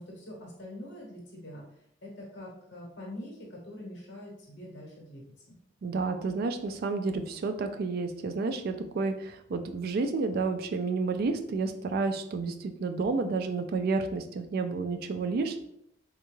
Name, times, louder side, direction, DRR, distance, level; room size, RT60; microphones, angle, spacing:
voice 1, 0.0-5.6, left 1 dB, 65° left, -2 dB, 1.0 m, -44 dB
voice 2, 5.8-15.6, right 4 dB, 55° right, 7 dB, 0.3 m, -30 dB
3.5 x 2.2 x 3.0 m, 0.75 s
head